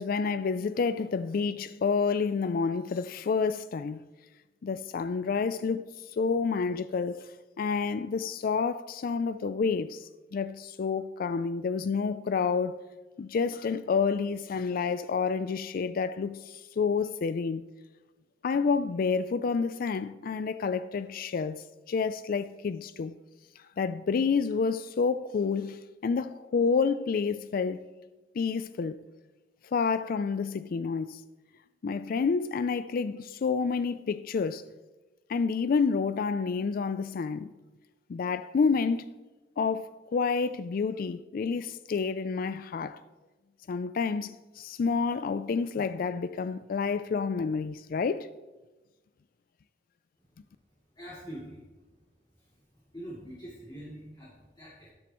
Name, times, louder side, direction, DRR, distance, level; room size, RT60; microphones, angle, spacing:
voice 1, 0.0-4.0 4.6-5.8 6.1-7.2 7.6-12.7 13.2-17.6 18.4-23.1 23.8-27.8 28.4-29.0 29.7-31.2 31.8-34.6 35.3-37.5 38.1-39.1 39.6-43.0 43.7-48.3, left 5 dB, 55° left, 0.3 m, -29 dB
voice 2, 50.9-51.6 52.0-52.1 52.3-54.9, equal, 25° left, 2.7 m, -45 dB
13.0 x 10.5 x 3.0 m
head